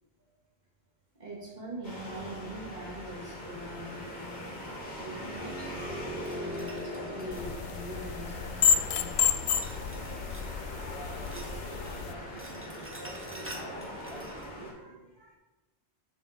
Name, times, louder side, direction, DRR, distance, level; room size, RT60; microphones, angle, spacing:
voice 1, 1.2-9.1 10.0-10.1 10.7-10.9 11.8-11.9 14.7-15.3, right 1 dB, 40° right, -5 dB, 2.8 m, -44 dB
sound 1, 1.8-14.7, equal, 45° left, 2.8 m, -41 dB
sound 2, 6.2-8.3 9.5-10.6 10.8-12.0 12.2-14.5, right 1 dB, 10° right, 1.4 m, -48 dB
sound 3, 7.3-12.1, left 8 dB, 80° left, 0.9 m, -30 dB
voice 2, 10.9-15.0, right 2 dB, 70° right, -6 dB, 2.6 m, -48 dB
7.2 x 5.6 x 6.9 m, 1.1 s
omnidirectional pair, 1.1 m